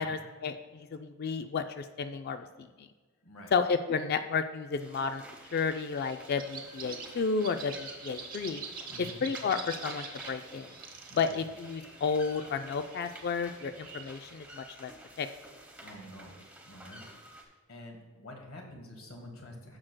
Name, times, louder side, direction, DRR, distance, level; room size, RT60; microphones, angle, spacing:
voice 1, 0.0-2.9 3.5-5.2 5.5-8.6 9.0-10.7 11.2-14.9 15.2-15.3, left 5 dB, 50° left, 8 dB, 0.3 m, -32 dB
voice 2, 3.2-3.5 8.9-9.3 11.1-11.4 15.8-17.1 17.4-19.8, left 1 dB, 90° left, 1 dB, 1.7 m, -48 dB
sound 1, 4.8-17.4, right 1 dB, 5° right, 0.9 m, -51 dB
sound 2, 5.4-14.3, right 5 dB, 40° right, 0.9 m, -46 dB
12.0 x 6.4 x 2.2 m, 1.4 s
head